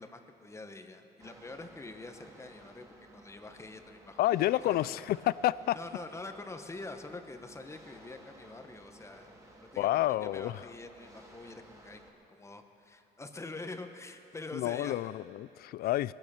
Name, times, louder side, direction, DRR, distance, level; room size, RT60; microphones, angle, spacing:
voice 1, 0.0-4.3 4.6-4.9 5.7-9.3 9.6-12.0 12.3-15.1, left 2 dB, 15° left, 1.1 m, -45 dB
sound 1, 1.2-12.1, right 1 dB, 20° right, 2.2 m, -56 dB
voice 2, 4.2-5.8 9.8-10.6 14.5-16.1, left 14 dB, 65° left, 0.4 m, -29 dB
21.0 x 8.9 x 6.6 m
cardioid pair, 110°, 17 cm